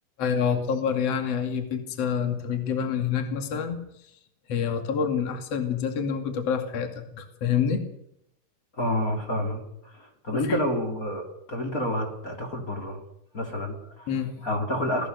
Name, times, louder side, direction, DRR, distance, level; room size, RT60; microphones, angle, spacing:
voice 1, 0.2-3.8 4.5-7.8 10.3-10.6 14.1-14.5, left 7 dB, 45° left, 6 dB, 3.2 m, -27 dB
voice 2, 8.7-13.0 13.3-14.1 14.4-15.1, left 1 dB, 25° left, 2 dB, 3.9 m, -29 dB
27.5 x 18.5 x 6.8 m, 0.76 s
omnidirectional pair, 4.2 m